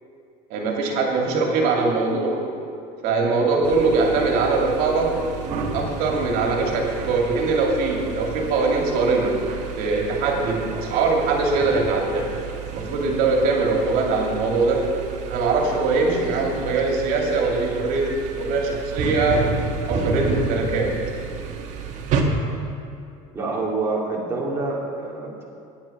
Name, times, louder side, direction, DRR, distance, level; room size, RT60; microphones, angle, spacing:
voice 1, 0.5-2.5 3.0-5.2 5.7-9.4 9.8-12.3 12.7-14.9 15.3-19.5 19.9-20.9, right 3 dB, 65° right, 0 dB, 2.4 m, -22 dB
sound 1, 3.6-22.2, right 5 dB, 50° right, 1.6 m, -31 dB
voice 2, 23.3-25.4, right 3 dB, 15° right, -5 dB, 2.4 m, -27 dB
13.0 x 9.8 x 5.9 m, 2.6 s
cardioid pair, 140°, 16 cm